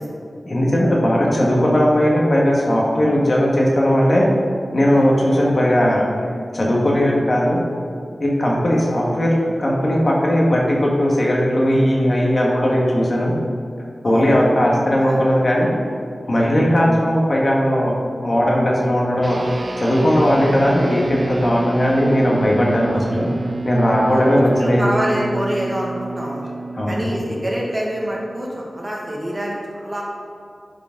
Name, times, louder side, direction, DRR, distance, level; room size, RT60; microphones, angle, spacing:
voice 1, 0.4-4.3 4.7-6.1 6.5-7.6 8.2-13.3 14.0-15.7 16.3-17.9 18.2-19.4 19.8-23.3 23.6-24.9 26.7-27.1, equal, 50° left, -3 dB, 1.7 m, -17 dB
voice 2, 14.0-14.4 15.0-15.2 22.9-23.0 24.1-24.2 24.6-26.5 26.9-30.0, equal, 25° right, -3 dB, 1.8 m, -26 dB
sound 1, 19.2-28.9, right 3 dB, 45° right, 0.4 m, -29 dB
10.5 x 5.2 x 3.9 m, 2.4 s
wide cardioid pair, 70°, 0 cm